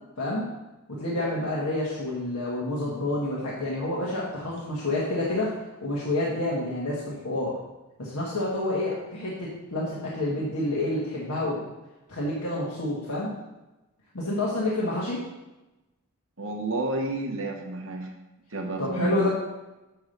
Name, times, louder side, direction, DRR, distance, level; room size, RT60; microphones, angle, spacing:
voice 1, 0.2-0.5 0.9-5.5 5.8-7.5 8.0-11.6 12.1-13.3 14.1-15.2 18.8-19.3, left 1 dB, 75° left, -6 dB, 1.5 m, -28 dB
voice 2, 16.4-18.1 18.5-19.3, right 2 dB, 65° right, 3 dB, 1.2 m, -30 dB
7.2 x 4.6 x 6.6 m, 1.1 s
head